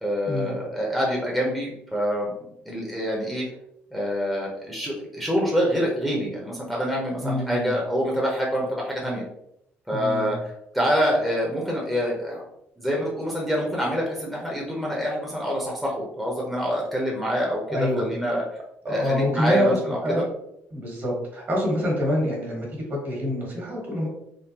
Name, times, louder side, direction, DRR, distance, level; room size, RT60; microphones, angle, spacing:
voice 1, 0.0-2.3 2.6-3.4 3.9-9.2 9.9-12.4 12.8-18.4 18.9-20.2, equal, ahead, -3 dB, 0.8 m, -26 dB
voice 2, 7.2-7.7 9.9-10.4 17.7-18.1 18.8-20.2 20.7-24.1, left 1 dB, 45° right, -2 dB, 1.5 m, -26 dB
3.6 x 2.2 x 2.8 m, 0.77 s
cardioid pair, 105°, 5 cm